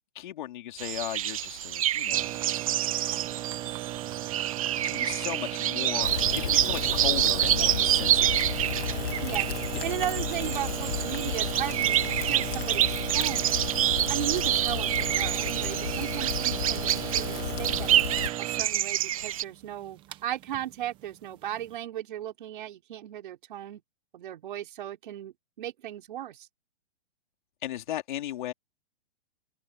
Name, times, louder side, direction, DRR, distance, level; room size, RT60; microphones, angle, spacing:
voice 1, 0.2-2.3 4.8-8.4 27.6-28.5, left 12 dB, 50° left, 3.8 m, -36 dB
sound 1, 0.8-19.4, right 12 dB, 35° right, 0.6 m, -28 dB
sound 2, 2.1-21.7, right 14 dB, 15° right, 1.1 m, -37 dB
Rain, 6.0-18.3, left 9 dB, 65° left, 3.7 m, -34 dB
voice 2, 9.8-13.5 14.1-18.0 18.4-23.8 24.1-26.5, right 12 dB, 50° right, 5.0 m, -36 dB
open air
hypercardioid pair, 165°, 32 cm